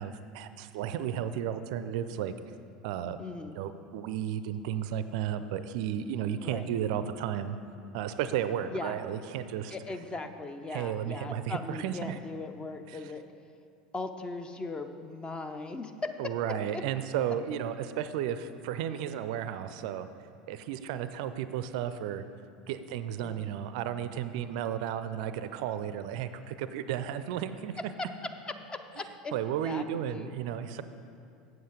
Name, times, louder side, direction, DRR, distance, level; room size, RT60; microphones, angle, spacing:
voice 1, 0.0-2.3 2.8-3.2 3.5-7.6 7.9-9.7 10.7-12.2 16.2-20.1 20.5-22.3 22.7-27.7 29.3-30.8, right 9 dB, 60° right, 12 dB, 0.4 m, -33 dB
voice 2, 3.2-3.6 6.4-6.7 8.7-9.0 9.7-13.2 13.9-16.4 16.7-16.8 23.2-23.5 27.8-29.3 29.6-30.3, left 3 dB, 20° left, 8 dB, 0.6 m, -39 dB
7.8 x 7.7 x 5.1 m, 2.5 s
hypercardioid pair, 80°, 4 cm